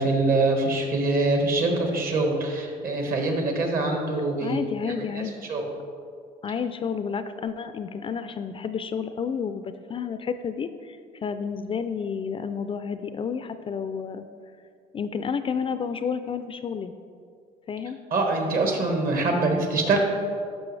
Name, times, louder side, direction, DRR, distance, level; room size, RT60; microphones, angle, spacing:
voice 1, 0.0-5.7 18.1-20.0, right 2 dB, 60° right, 2 dB, 1.6 m, -24 dB
voice 2, 4.4-5.4 6.4-9.6 9.9-14.2 14.9-16.9 17.7-18.0, left 6 dB, 30° left, 10 dB, 0.3 m, -30 dB
12.0 x 5.3 x 3.3 m, 2.2 s
cardioid pair, 110°, 17 cm